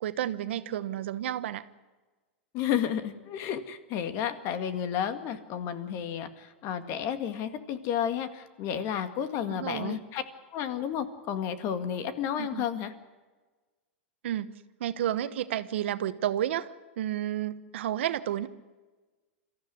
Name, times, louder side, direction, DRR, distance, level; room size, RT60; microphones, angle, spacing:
voice 1, 0.0-1.7 9.5-10.0 12.4-12.7 14.2-18.5, right 11 dB, 75° right, 13 dB, 1.1 m, -31 dB
voice 2, 2.5-10.2 10.5-12.9, left 9 dB, 45° left, 9 dB, 2.1 m, -32 dB
23.5 x 14.5 x 9.6 m, 1.3 s
hypercardioid pair, 120°, 6 cm